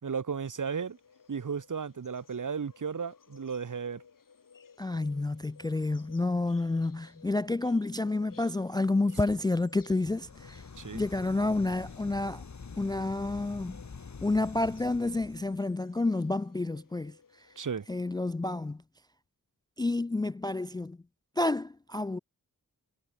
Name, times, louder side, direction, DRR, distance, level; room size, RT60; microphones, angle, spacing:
voice 1, 0.0-1.0 1.3-4.0 10.8-11.0 17.6-17.8, right 6 dB, 65° right, 2.5 m, -34 dB
sound 1, 0.5-18.0, left 6 dB, 70° left, 4.6 m, -59 dB
voice 2, 4.8-10.6 10.9-12.4 12.8-13.8 14.2-17.1 17.9-18.8 19.8-21.0 21.4-22.2, left 2 dB, 15° left, 0.3 m, -29 dB
sound 2, 9.9-15.6, left 5 dB, 55° left, 4.8 m, -46 dB
wide cardioid pair, 100°, 33 cm